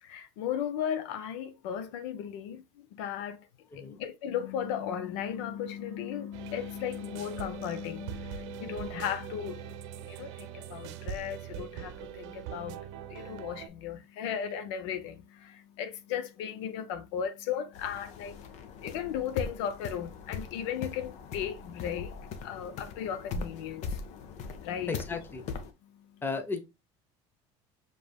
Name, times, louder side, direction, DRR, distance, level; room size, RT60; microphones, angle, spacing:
voice 1, 0.0-3.5 3.7-12.8 13.1-24.9 25.9-26.2, left 9 dB, 85° left, 0.7 m, -36 dB
sound 1, 6.3-13.7, right 10 dB, 90° right, 0.6 m, -42 dB
sound 2, 17.7-25.7, left 5 dB, 55° left, 0.8 m, -40 dB
voice 2, 24.9-25.4 26.2-26.6, left 4 dB, 15° left, 0.7 m, -34 dB
5.2 x 3.3 x 2.3 m
cardioid pair, 130°, 14 cm